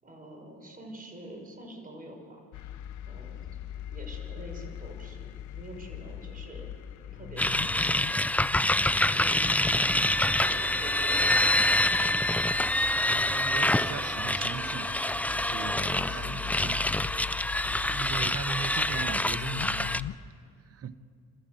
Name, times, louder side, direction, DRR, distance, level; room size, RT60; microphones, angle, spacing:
voice 1, 0.0-2.7 3.1-3.5 3.8-6.7 7.1-8.4 8.8-10.1 10.4-12.4 15.5-17.3, right 1 dB, 30° right, 5.7 m, -46 dB
sound 1, 2.5-20.2, left 11 dB, 75° left, 0.7 m, -42 dB
sound 2, 7.4-20.0, left 1 dB, 5° left, 0.4 m, -26 dB
sound 3, 9.5-16.3, right 4 dB, 75° right, 2.4 m, -44 dB
voice 2, 13.1-14.9 15.3-15.8 16.1-16.9 17.8-20.1 20.7-20.9, right 7 dB, 50° right, 1.0 m, -39 dB
28.0 x 13.5 x 7.9 m
cardioid pair, 90°, 30 cm